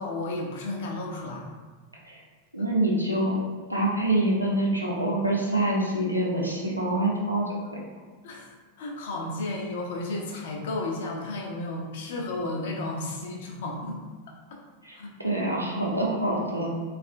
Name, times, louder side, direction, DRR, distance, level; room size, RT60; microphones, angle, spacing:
voice 1, 0.0-1.5 8.2-14.0 14.9-15.1, left 2 dB, 55° left, 0 dB, 0.6 m, -33 dB
voice 2, 2.5-3.4 3.7-7.5 14.8-15.0 15.2-16.7, right 1 dB, 90° right, -4 dB, 0.7 m, -25 dB
3.4 x 2.4 x 2.4 m, 1.5 s
figure-of-eight pair, 90°, 0 cm